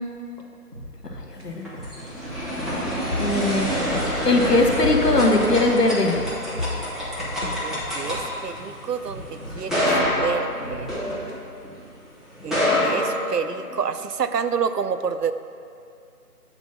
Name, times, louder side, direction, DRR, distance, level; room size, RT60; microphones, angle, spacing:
sound 1, 0.7-2.8 3.1-3.3 3.6-5.6 5.8-8.7 9.1-11.6, equal, 40° right, 1.0 m, -40 dB
voice 1, 1.3-1.6 3.2-3.8 4.2-6.2, left 2 dB, 80° left, 2 dB, 1.2 m, -20 dB
sound 2, 1.4-11.8 12.3-13.9, left 1 dB, ahead, 0.8 m, -27 dB
sound 3, 2.7-7.7, left 2 dB, 60° left, 0.5 m, -33 dB
voice 2, 7.6-10.9 12.4-15.3, right 6 dB, 85° right, 11 dB, 0.6 m, -28 dB
8.0 x 4.1 x 5.8 m, 2.4 s
figure-of-eight pair, 180°, 47 cm